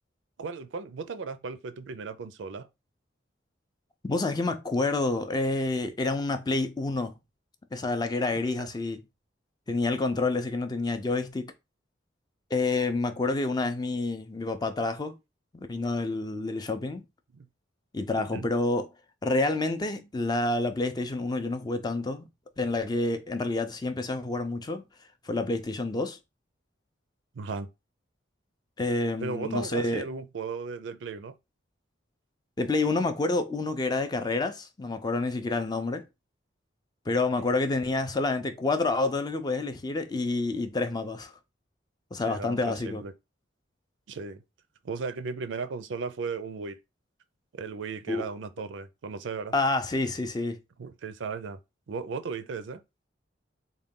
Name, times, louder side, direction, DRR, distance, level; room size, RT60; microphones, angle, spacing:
voice 1, 0.4-2.7 8.4-8.7 17.3-17.5 18.2-18.5 27.3-27.7 29.2-31.3 37.4-37.5 42.2-43.1 44.1-44.4 44.8-46.8 47.5-49.5 50.8-51.6 51.9-52.8, right 4 dB, 75° right, 0.4 m, -36 dB
voice 2, 4.0-7.1 7.7-9.0 9.7-11.5 12.5-15.1 15.7-17.0 17.9-18.9 19.2-22.2 22.6-24.8 25.3-26.2 28.8-30.0 32.6-36.0 37.1-41.3 42.1-43.0 48.1-48.2 49.5-50.6, left 2 dB, 20° left, 0.4 m, -28 dB
3.7 x 2.2 x 3.6 m
head